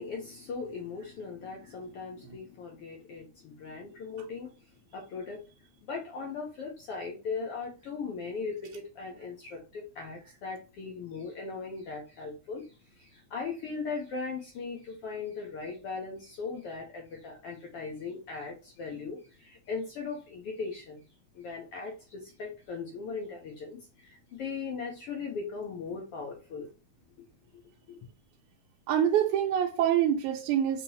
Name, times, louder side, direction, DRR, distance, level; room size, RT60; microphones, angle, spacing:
voice 1, 0.0-4.5 4.9-5.4 5.8-21.0 21.3-26.7 27.2-27.3 27.5-27.6 27.9-28.0, left 4 dB, 70° left, 1.4 m, -39 dB
voice 2, 28.9-30.8, right 10 dB, 80° right, 2.0 m, -25 dB
5.5 x 2.9 x 2.8 m
omnidirectional pair, 3.6 m